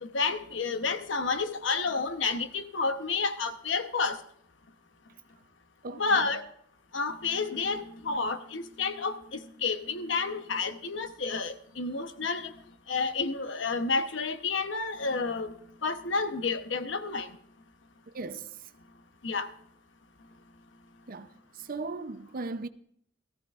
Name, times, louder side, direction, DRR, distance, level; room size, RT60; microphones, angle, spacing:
voice 1, 0.0-4.2 5.9-6.4 6.9-12.5 12.9-15.5 15.8-17.3 19.2-19.5, left 4 dB, 80° left, 1.0 m, -30 dB
voice 2, 5.8-6.3 18.1-18.7 21.1-21.3 21.5-22.7, right 3 dB, 50° right, 0.6 m, -37 dB
18.5 x 14.5 x 2.5 m
head